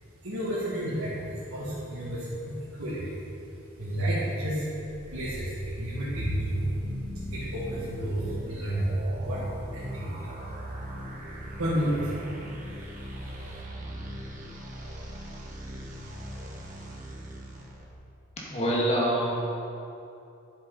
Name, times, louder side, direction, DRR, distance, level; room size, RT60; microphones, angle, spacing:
voice 1, 0.0-3.2 3.5-13.6, right 1 dB, 70° right, -9 dB, 2.1 m, -32 dB
sound 1, 4.6-17.8, equal, 40° right, 1.4 m, -39 dB
voice 2, 18.4-19.3, right 1 dB, 30° left, -5 dB, 1.9 m, -26 dB
10.5 x 7.4 x 4.1 m, 2.7 s
head